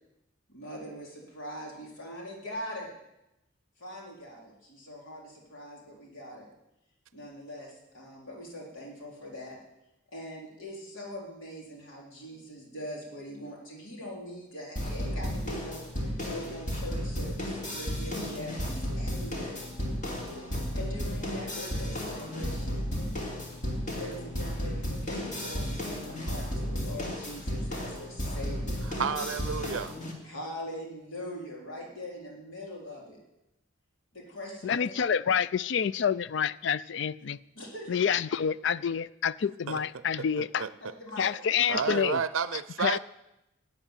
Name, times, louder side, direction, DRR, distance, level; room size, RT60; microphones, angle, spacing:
voice 1, 0.5-2.9 3.8-6.5 7.1-9.6 10.1-19.6 20.7-22.9 24.0-28.8 30.2-33.2 34.1-34.9 37.5-37.9 40.8-41.4, equal, 80° left, -2 dB, 3.7 m, -42 dB
sound 1, 14.8-30.1, equal, 40° left, 2.5 m, -33 dB
voice 2, 29.0-29.9 39.7-39.8 40.6-40.7 41.7-43.0, right 6 dB, 85° right, 13 dB, 0.5 m, -30 dB
voice 3, 34.6-37.4 37.9-40.7 41.2-42.2 42.5-43.0, left 7 dB, 60° left, 18 dB, 0.4 m, -28 dB
12.0 x 7.8 x 9.0 m, 0.90 s
head